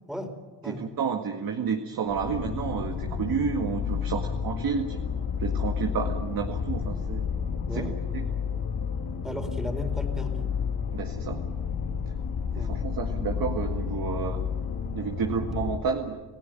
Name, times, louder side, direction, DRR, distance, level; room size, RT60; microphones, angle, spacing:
voice 1, 0.7-5.0 5.4-7.3 7.7-8.3 10.9-11.4 12.5-14.4 14.9-16.2, right 6 dB, 55° right, 4 dB, 2.1 m, -30 dB
sound 1, 2.1-15.8, left 6 dB, 55° left, 2.5 m, -31 dB
voice 2, 9.2-10.5 12.5-12.7, equal, ahead, 6 dB, 4.0 m, -35 dB
28.0 x 16.0 x 9.0 m, 1.3 s
cardioid pair, 80°, 43 cm